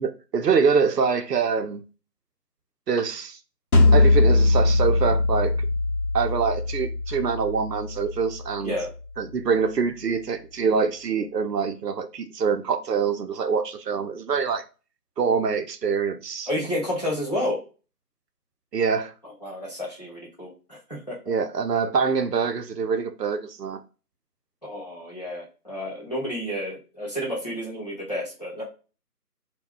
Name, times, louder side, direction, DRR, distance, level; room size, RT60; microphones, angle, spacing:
voice 1, 0.0-1.8 2.9-3.4 3.9-5.6 6.1-8.8 9.2-14.6 15.2-16.5 18.7-19.1 21.3-23.8, right 5 dB, 80° right, 8 dB, 0.6 m, -25 dB
sound 1, 3.7-8.8, left 2 dB, 60° left, 0.9 m, -21 dB
voice 2, 8.6-8.9 16.5-17.6 19.2-21.2 24.6-28.6, equal, 25° left, -6 dB, 0.8 m, -31 dB
2.2 x 2.2 x 3.6 m, 0.33 s
figure-of-eight pair, 160°, 48 cm